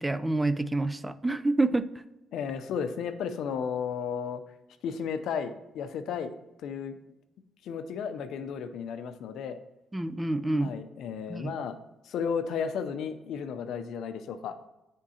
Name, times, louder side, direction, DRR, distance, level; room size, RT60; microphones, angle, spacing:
voice 1, 0.0-1.9 9.9-10.7 11.3-11.5, right 2 dB, 15° right, 12 dB, 0.3 m, -27 dB
voice 2, 2.3-4.4 4.8-6.3 6.6-7.0 7.6-9.6 10.6-11.8 12.0-14.6, left 6 dB, 75° left, 9 dB, 0.5 m, -33 dB
9.7 x 3.6 x 2.8 m, 0.96 s
cardioid pair, 90°, 0 cm